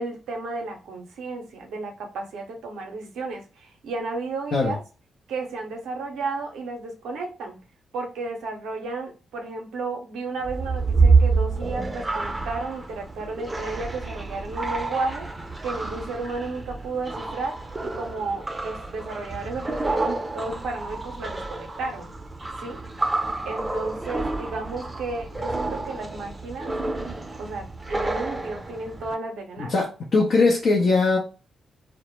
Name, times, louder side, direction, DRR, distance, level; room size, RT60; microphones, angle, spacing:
voice 1, 0.0-4.8 5.3-7.6 7.9-15.3 15.6-22.2 22.6-22.8 23.4-26.7 27.4-29.7, right 3 dB, 80° right, 0.6 m, -33 dB
sound 1, 10.4-29.1, right 3 dB, 30° right, 0.5 m, -28 dB
voice 2, 29.6-31.2, left 3 dB, 65° left, 0.6 m, -20 dB
2.1 x 2.0 x 3.0 m
hypercardioid pair, 45°, 0 cm